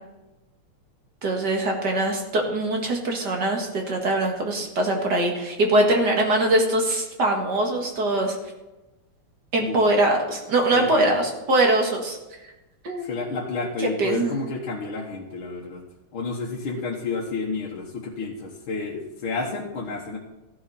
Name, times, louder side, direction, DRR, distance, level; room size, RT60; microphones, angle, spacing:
voice 1, 1.2-8.4 9.5-12.2 12.8-13.1 13.8-14.4, right 1 dB, 50° right, 2 dB, 2.4 m, -22 dB
voice 2, 10.7-11.2 13.0-15.8 16.1-20.2, left 3 dB, 70° left, -3 dB, 2.1 m, -30 dB
15.0 x 11.0 x 4.2 m, 1.0 s
omnidirectional pair, 2.4 m